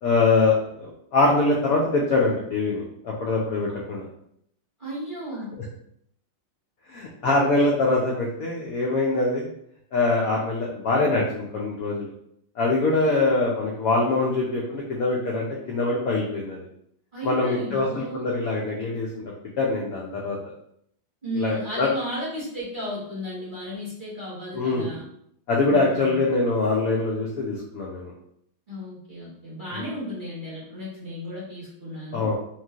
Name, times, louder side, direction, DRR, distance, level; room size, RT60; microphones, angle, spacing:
voice 1, 0.0-4.1 6.9-9.5 9.9-12.1 12.6-16.6 17.2-19.2 19.6-20.4 21.4-21.9 24.5-24.9 25.5-28.1 32.1-32.4, left 3 dB, 80° left, -3 dB, 0.7 m, -23 dB
voice 2, 4.8-5.5 12.9-13.3 17.1-18.3 21.2-25.0 25.7-26.2 28.7-32.3, equal, 35° right, -9 dB, 1.0 m, -34 dB
3.1 x 2.9 x 2.3 m, 0.71 s
omnidirectional pair, 2.1 m